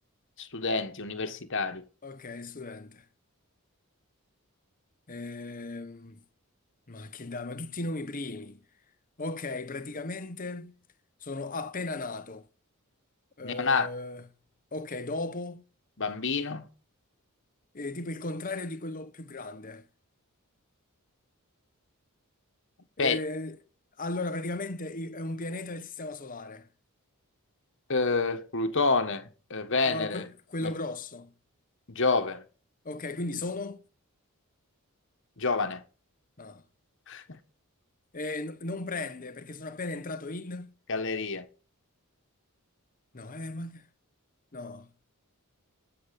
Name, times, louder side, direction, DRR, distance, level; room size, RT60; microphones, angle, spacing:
voice 1, 0.4-1.8 13.4-13.9 16.0-16.6 23.0-23.2 27.9-30.2 30.6-30.7 31.9-32.4 35.4-35.8 37.1-37.2 40.9-41.5, left 4 dB, 55° left, 1.5 m, -28 dB
voice 2, 2.0-3.1 5.1-6.2 6.9-8.6 9.2-10.7 11.2-12.5 13.4-14.3 14.7-15.6 17.7-19.8 23.0-23.6 24.0-26.7 29.9-31.3 32.8-33.8 36.4-36.6 38.1-40.7 43.1-43.9 44.5-44.9, left 2 dB, 40° left, 1.0 m, -36 dB
16.0 x 7.0 x 6.9 m
head